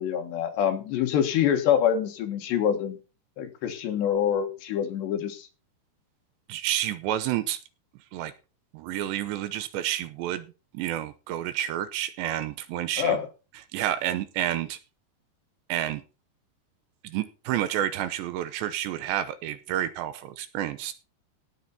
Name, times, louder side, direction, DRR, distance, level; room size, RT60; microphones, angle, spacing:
voice 1, 0.0-3.0 3.4-5.5 13.0-13.2, left 9 dB, 70° left, 5 dB, 3.7 m, -25 dB
voice 2, 6.5-7.6 8.1-8.3 8.7-13.2 13.7-14.8 15.7-16.0 17.0-20.9, right 12 dB, 80° right, 12 dB, 2.9 m, -30 dB
17.5 x 6.9 x 4.2 m, 0.32 s
omnidirectional pair, 5.4 m